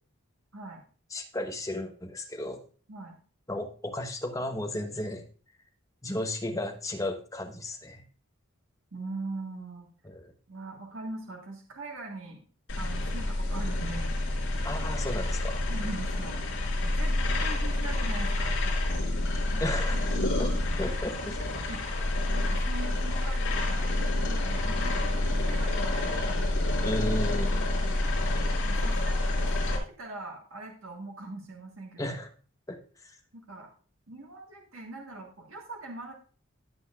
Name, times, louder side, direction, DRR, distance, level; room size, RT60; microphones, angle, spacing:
voice 1, 1.1-2.6 3.5-5.2 6.0-8.0 10.0-10.3 14.6-15.6 19.6-20.1 20.4-20.5 20.8-21.4 26.8-27.7 32.0-32.3 32.7-33.2, left 1 dB, 15° left, 5 dB, 1.1 m, -34 dB
voice 2, 8.9-9.9 10.5-12.4 12.7-14.1 14.7-14.8 15.7-16.5 16.8-19.1 19.5-20.5 21.7-21.8 22.3-26.8 27.8-28.1 28.6-32.2 33.3-33.7 34.1-36.1, right 2 dB, 75° right, 0 dB, 1.6 m, -42 dB
sound 1, 12.7-29.8, left 1 dB, 55° left, 5.2 m, -28 dB
16.0 x 8.0 x 2.4 m, 0.40 s
head